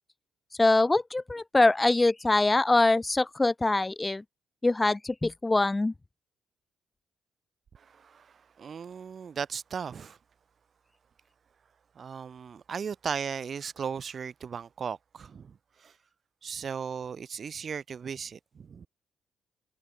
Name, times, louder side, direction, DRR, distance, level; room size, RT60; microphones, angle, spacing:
voice 1, 0.6-4.2 4.6-5.9, left 2 dB, 15° left, 0.5 m, -23 dB
voice 2, 7.7-10.2 11.9-15.9 16.4-18.9, right 6 dB, 45° right, 1.6 m, -37 dB
cardioid pair, 90°, 0 cm